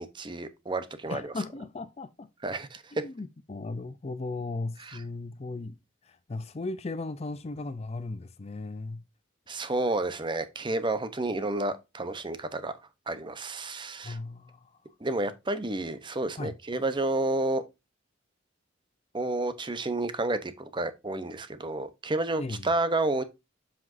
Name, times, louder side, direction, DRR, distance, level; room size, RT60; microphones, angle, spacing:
voice 1, 0.0-1.3 2.4-2.8 4.8-5.0 9.5-12.7 13.1-14.2 15.0-17.6 19.1-23.2, right 2 dB, 25° right, 0.8 m, -30 dB
voice 2, 1.1-2.3 2.9-5.7 6.0-9.0 14.0-14.7 16.4-16.6 22.4-22.7, left 3 dB, 35° left, 0.5 m, -36 dB
7.7 x 5.9 x 2.6 m
head